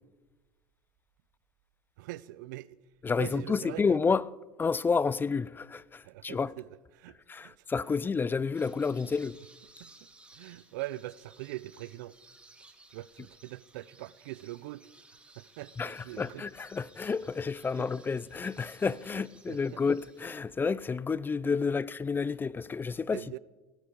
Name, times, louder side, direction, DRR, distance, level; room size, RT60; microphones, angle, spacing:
voice 1, 2.0-2.8 3.2-3.8 6.0-6.7 6.9-7.5 9.8-9.9 10.4-12.1 12.9-14.9 15.4-16.5 17.7-17.9 19.1-19.8 23.1-23.4, right 17 dB, 85° right, 0.5 m, -42 dB
voice 2, 3.0-4.2 4.6-6.5 7.3-9.4 15.8-23.4, left 5 dB, 20° left, 0.4 m, -30 dB
sound 1, 8.5-20.4, right 2 dB, 10° right, 1.8 m, -58 dB
19.0 x 13.0 x 5.2 m
supercardioid pair, 95°, 10 cm